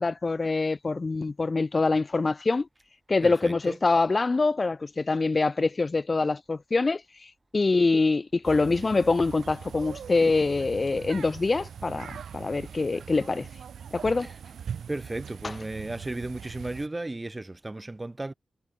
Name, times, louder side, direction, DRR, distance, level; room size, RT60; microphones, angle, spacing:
voice 1, 0.0-2.7 3.1-7.0 7.5-13.5 13.9-14.3 15.4-15.5, left 3 dB, 30° left, 0.4 m, -25 dB
voice 2, 3.2-3.8 14.2-14.3 14.9-18.3, right 2 dB, 20° right, 1.9 m, -35 dB
sound 1, 8.4-16.9, right 7 dB, 85° right, 1.2 m, -41 dB
wide cardioid pair, 115°, 0 cm